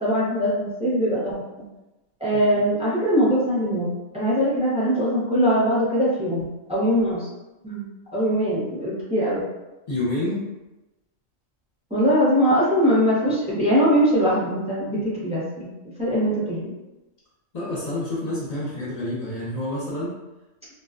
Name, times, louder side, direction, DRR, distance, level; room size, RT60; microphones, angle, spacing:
voice 1, 0.0-1.3 2.2-3.9 4.1-7.3 7.6-7.8 8.1-9.4 11.9-15.7 16.0-16.7, equal, 5° right, -9 dB, 0.5 m, -21 dB
voice 2, 9.9-10.5 17.5-20.2, left 1 dB, 40° left, -7 dB, 0.6 m, -28 dB
2.4 x 2.2 x 2.4 m, 1.0 s
omnidirectional pair, 1.4 m